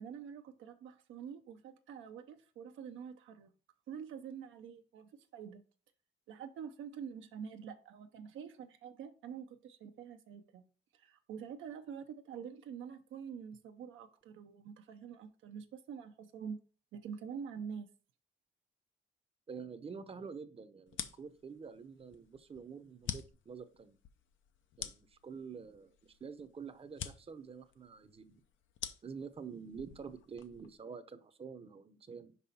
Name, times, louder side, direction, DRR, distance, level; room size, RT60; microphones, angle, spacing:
voice 1, 0.0-3.5 3.9-5.6 6.3-10.6 10.9-16.6 16.9-17.9, right 7 dB, 80° right, 0.7 m, -46 dB
voice 2, 19.5-24.0 24.8-28.4 29.0-32.4, right 6 dB, 30° right, 0.7 m, -48 dB
sound 1, 20.9-30.7, left 10 dB, 75° left, 0.6 m, -47 dB
5.5 x 5.0 x 4.2 m
cardioid pair, 90°, 20 cm